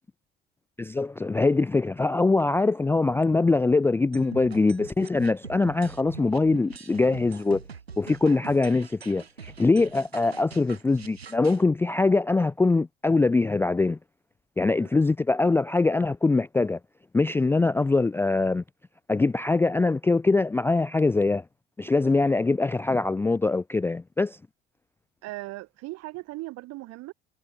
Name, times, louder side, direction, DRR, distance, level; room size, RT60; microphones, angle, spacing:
voice 1, 0.8-7.6 8.0-14.0 14.6-16.8 17.1-18.6 19.1-21.4 21.8-24.4, left 3 dB, 10° left, 0.4 m, -23 dB
sound 1, 4.1-11.6, right 6 dB, 85° right, 3.4 m, -44 dB
voice 2, 25.2-27.1, right 20 dB, 55° right, 2.8 m, -39 dB
figure-of-eight pair, 60°, 30 cm